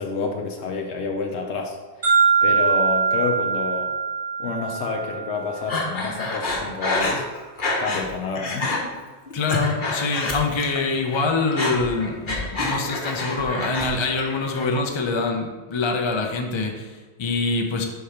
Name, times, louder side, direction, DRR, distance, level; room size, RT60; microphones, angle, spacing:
voice 1, 0.0-1.8 2.4-3.9 4.4-7.2 7.8-8.7, left 4 dB, 90° left, 2 dB, 1.0 m, -28 dB
sound 1, 2.0-6.0, right 5 dB, 55° right, 2.3 m, -22 dB
Breathing, 5.7-8.1 8.4-8.8 9.3-10.8 11.1-13.9 14.2-14.8, left 2 dB, 50° left, 1.1 m, -27 dB
voice 2, 9.3-17.8, left 3 dB, 35° left, 3 dB, 0.5 m, -25 dB
5.0 x 4.5 x 5.7 m, 1.3 s
omnidirectional pair, 1.1 m